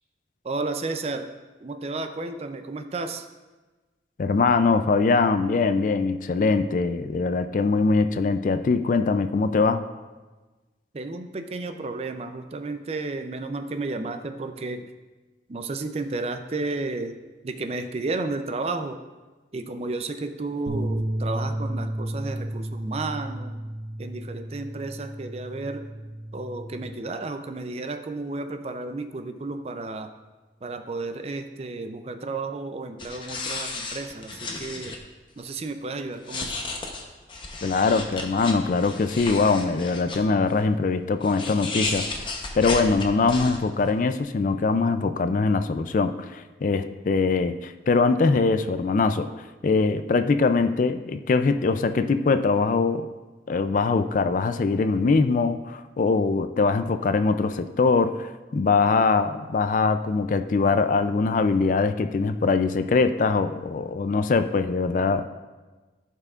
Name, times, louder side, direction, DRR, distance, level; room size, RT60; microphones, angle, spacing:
voice 1, 0.4-1.3 1.6-3.3 10.9-14.9 15.5-17.2 17.4-19.0 19.5-23.6 24.0-25.8 26.3-30.1 30.6-35.0 35.4-36.6, right 3 dB, 35° right, 8 dB, 0.4 m, -32 dB
voice 2, 4.2-9.8 37.6-42.0 42.5-49.3 49.6-53.1 53.5-58.2 58.5-65.3, left 4 dB, 45° left, 10 dB, 0.4 m, -22 dB
sound 1, 20.7-26.9, right 1 dB, 65° right, 0.8 m, -32 dB
sound 2, 33.0-35.0 35.5-35.6 36.2-40.2 41.2-43.9, left 3 dB, 30° left, 0.8 m, -33 dB
14.0 x 5.6 x 2.4 m, 1.2 s
head